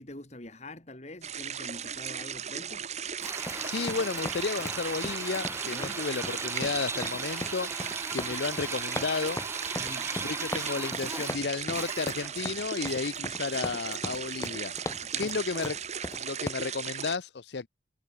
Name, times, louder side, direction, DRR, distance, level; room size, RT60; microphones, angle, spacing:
voice 1, 0.0-2.9 5.6-6.0 9.8-10.1 15.0-15.3, left 1 dB, 35° left, 3.1 m, -45 dB
sound 1, 1.2-17.2, right 8 dB, 40° right, 1.8 m, -37 dB
Drill, 3.2-12.5, right 3 dB, 15° right, 1.2 m, -38 dB
sound 2, 3.4-16.5, left 1 dB, 15° left, 1.4 m, -40 dB
voice 2, 3.6-7.7 8.1-9.4 10.2-14.7 15.2-15.8 16.2-17.7, left 4 dB, 65° left, 0.6 m, -33 dB
head